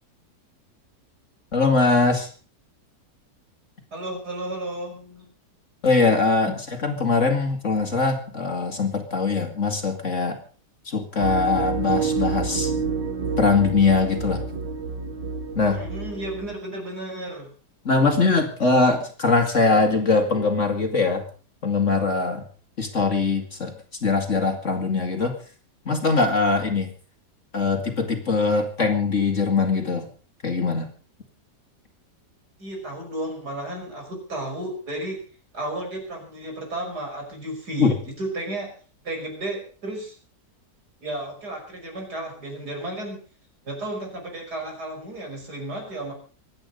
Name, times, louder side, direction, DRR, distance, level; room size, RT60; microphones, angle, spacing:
voice 1, 1.5-2.3 5.8-6.5 6.8-10.4 10.9-12.7 13.4-14.4 15.5-15.8 17.8-21.2 21.6-22.4 22.8-23.7 24.0-25.4 25.9-26.9 27.5-30.1 30.4-30.9 37.8-38.0, left 4 dB, 45° left, 5 dB, 2.6 m, -21 dB
voice 2, 3.9-5.3 6.5-6.6 15.7-17.5 32.6-35.2 35.5-38.7 39.0-40.1 41.0-43.2 43.6-46.1, right 1 dB, 65° right, 2 dB, 6.3 m, -33 dB
sound 1, 11.2-16.5, right 5 dB, 85° right, 2.0 m, -28 dB
24.5 x 9.5 x 5.4 m, 0.41 s
omnidirectional pair, 1.9 m